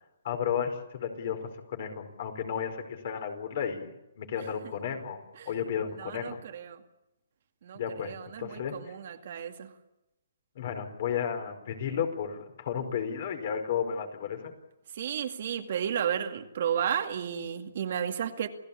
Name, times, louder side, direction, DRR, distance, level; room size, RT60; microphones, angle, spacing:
voice 1, 0.2-6.4 7.7-9.0 10.5-14.5, left 8 dB, 45° left, 6 dB, 4.9 m, -33 dB
voice 2, 6.0-6.8 7.6-9.7 15.0-18.5, right 9 dB, 50° right, 5 dB, 2.2 m, -33 dB
28.5 x 16.5 x 8.7 m, 0.95 s
hypercardioid pair, 165°, 0 cm